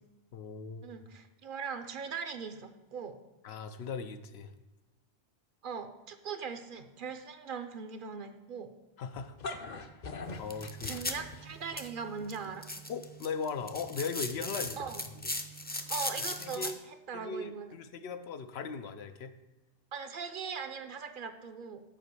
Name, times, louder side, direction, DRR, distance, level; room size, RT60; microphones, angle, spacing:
voice 1, 0.3-0.9 3.4-4.5 9.0-9.4 9.8-11.1 12.9-14.9 16.2-16.8 17.1-19.3, left 5 dB, 90° left, 9 dB, 0.9 m, -39 dB
voice 2, 0.8-3.2 5.6-8.7 10.8-12.7 14.8-15.0 15.9-16.7 17.1-17.7 19.9-21.8, right 6 dB, 60° right, 8 dB, 0.8 m, -40 dB
sound 1, 9.2-11.8, left 3 dB, 50° left, 0.7 m, -42 dB
sound 2, 10.2-16.7, left 1 dB, 15° left, 0.4 m, -39 dB
7.3 x 5.0 x 6.9 m, 1.0 s
omnidirectional pair, 1.0 m